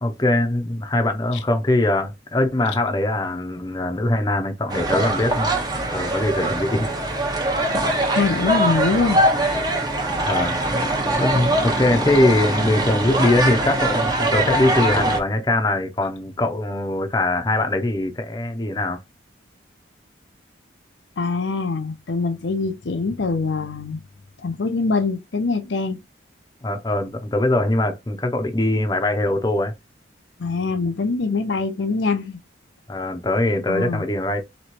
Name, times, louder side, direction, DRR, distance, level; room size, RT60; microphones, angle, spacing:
voice 1, 0.0-5.5 5.9-6.9 10.2-10.6 11.2-19.0 26.6-29.7 32.9-34.4, left 1 dB, 20° left, 0.7 m, -22 dB
sound 1, 4.7-15.2, right 1 dB, 20° right, 0.8 m, -22 dB
voice 2, 8.1-9.2 21.2-24.0 24.4-26.0 30.4-32.4 33.7-34.0, left 4 dB, 75° left, 0.6 m, -23 dB
3.1 x 3.0 x 4.4 m
head